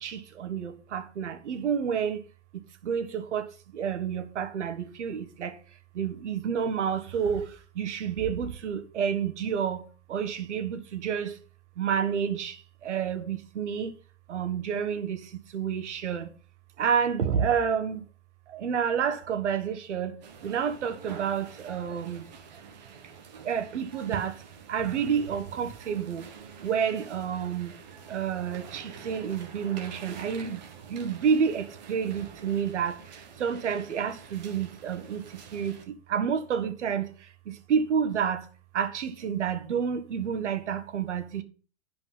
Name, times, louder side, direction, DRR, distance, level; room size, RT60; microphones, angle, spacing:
voice 1, 0.0-2.2 2.8-3.5 3.7-5.6 5.9-7.5 7.8-9.8 10.1-11.3 11.8-12.6 12.8-13.9 14.3-15.3 15.5-16.3 16.8-18.0 18.5-22.3 23.4-24.4 24.7-26.2 26.6-27.7 28.1-30.6 30.9-32.9 33.4-35.2 35.5-35.7 36.1-37.1 37.5-38.4 38.7-41.4, right 7 dB, 80° right, 1.5 m, -29 dB
sound 1, 20.2-35.8, right 6 dB, 40° right, 1.5 m, -46 dB
10.0 x 5.2 x 5.7 m
hypercardioid pair, 180°, 35 cm